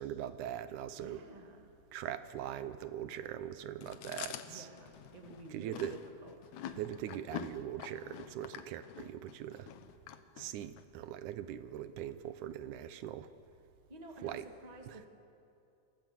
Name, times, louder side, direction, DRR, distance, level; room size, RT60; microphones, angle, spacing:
voice 1, 0.0-1.2 1.9-4.7 5.5-6.0 6.8-9.7 10.4-13.3 14.2-14.5, right 11 dB, 90° right, 12 dB, 2.4 m, -41 dB
voice 2, 1.0-1.7 4.5-6.5 13.9-15.1, right 1 dB, 15° right, 3 dB, 1.6 m, -52 dB
Chewing mastication, 3.8-10.8, left 10 dB, 75° left, 2.3 m, -46 dB
27.5 x 18.5 x 7.7 m, 2.6 s
omnidirectional pair, 3.4 m